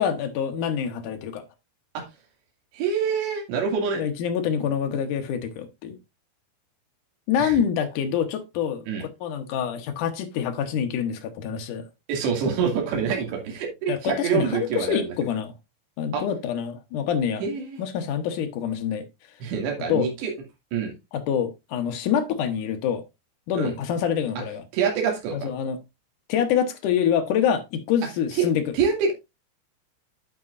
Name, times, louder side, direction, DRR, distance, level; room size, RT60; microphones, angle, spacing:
voice 1, 0.0-1.4 4.0-6.0 7.3-11.9 13.9-15.5 16.0-17.5 17.8-19.0 19.9-20.1 21.1-23.0 23.5-24.6 25.3-25.8 26.3-28.6, left 8 dB, 80° left, 1.8 m, -26 dB
voice 2, 2.7-4.0 7.4-7.5 8.9-9.0 12.1-15.1 16.1-16.2 17.4-17.8 19.4-20.3 20.7-20.9 23.5-23.7 24.7-25.5 28.4-28.5 28.7-29.1, right 6 dB, 80° right, 4.5 m, -26 dB
9.7 x 8.2 x 2.5 m
omnidirectional pair, 5.0 m